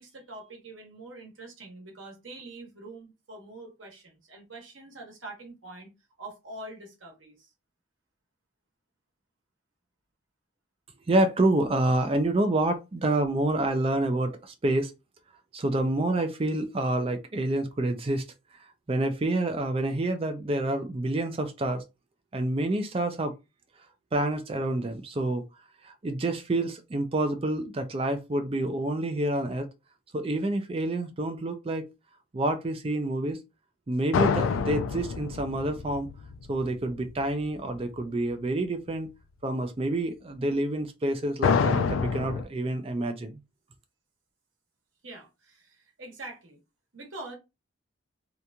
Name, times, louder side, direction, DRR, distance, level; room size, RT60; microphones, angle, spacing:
voice 1, 0.0-5.9 6.2-7.5 45.0-46.6 46.9-47.3, right 2 dB, 80° right, 1.1 m, -44 dB
voice 2, 11.1-14.9 15.5-18.2 18.9-21.8 22.3-23.3 24.1-25.4 25.8-29.7 30.1-31.9 32.3-33.4 33.9-36.1 36.5-39.1 39.4-43.4, right 1 dB, 30° right, 0.4 m, -28 dB
sound 1, 34.1-37.1 41.4-42.4, left 5 dB, 85° left, 0.3 m, -27 dB
2.9 x 2.5 x 2.2 m
head